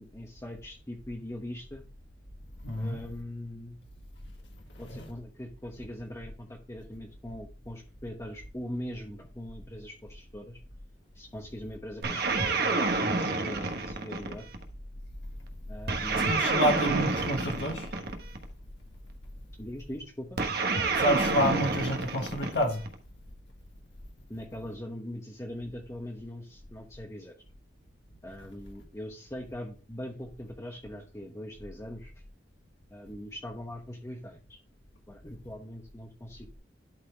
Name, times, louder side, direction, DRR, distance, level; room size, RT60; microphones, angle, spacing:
voice 1, 0.0-1.8 2.8-3.8 4.8-10.6 11.1-14.5 15.7-16.4 19.6-20.4 24.3-27.3 28.2-32.1 32.9-34.6 35.1-36.6, left 1 dB, 15° left, 1.0 m, -41 dB
voice 2, 2.6-3.0 4.9-5.1 16.1-17.9 21.0-22.8, equal, 70° left, 1.7 m, -28 dB
sound 1, 12.0-14.6 15.9-18.4 20.4-22.9, right 3 dB, 55° right, 1.2 m, -28 dB
11.5 x 4.2 x 3.4 m
head